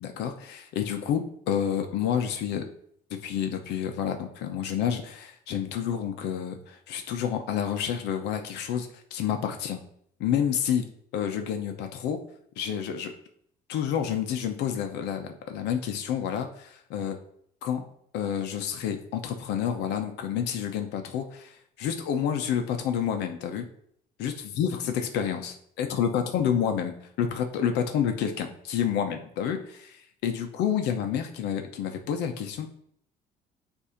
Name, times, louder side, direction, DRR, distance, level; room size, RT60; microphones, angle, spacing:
voice 1, 0.0-2.6 3.1-9.8 10.2-10.8 11.1-12.2 12.6-13.1 13.7-17.2 17.6-17.8 18.1-23.7 24.2-32.7, left 8 dB, 85° left, 6 dB, 0.8 m, -29 dB
8.2 x 2.8 x 5.0 m, 0.67 s
cardioid pair, 110°, 17 cm